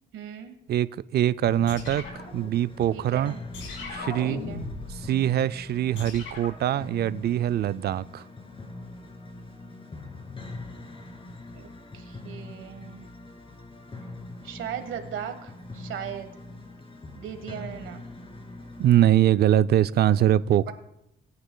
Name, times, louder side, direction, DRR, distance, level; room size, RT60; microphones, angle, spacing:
voice 1, 0.1-0.6 2.9-3.4 4.2-4.7 11.5-11.7 11.9-13.1 14.4-16.3 17.1-18.0 20.7-20.8, right 9 dB, 80° right, 1.3 m, -38 dB
voice 2, 0.7-3.3 3.9-4.4 4.9-8.3 18.8-20.7, right 11 dB, 55° right, 0.4 m, -23 dB
sound 1, 1.4-19.0, left 2 dB, 25° left, 2.2 m, -43 dB
sound 2, 1.7-3.0 3.5-5.1 5.9-6.7, left 3 dB, 90° left, 2.6 m, -38 dB
18.5 x 9.5 x 2.2 m
cardioid pair, 90°, 20 cm